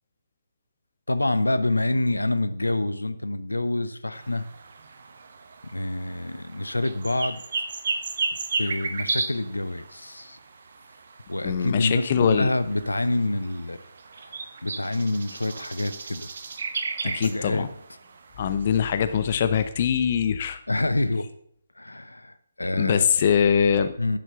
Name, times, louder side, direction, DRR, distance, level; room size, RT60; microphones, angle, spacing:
voice 1, 1.1-4.4 5.6-7.4 8.6-10.4 11.3-13.9 14.6-16.3 17.0-17.7 20.7-21.3 21.8-23.1 24.0-24.2, left 2 dB, 75° left, 13 dB, 0.8 m, -27 dB
sound 1, 4.1-19.7, right 4 dB, 50° right, 1.1 m, -35 dB
voice 2, 11.4-12.5 17.1-17.7 18.4-20.6 22.8-23.9, left 7 dB, 35° left, 11 dB, 0.7 m, -22 dB
10.0 x 7.5 x 5.7 m, 0.69 s
figure-of-eight pair, 140°, 0 cm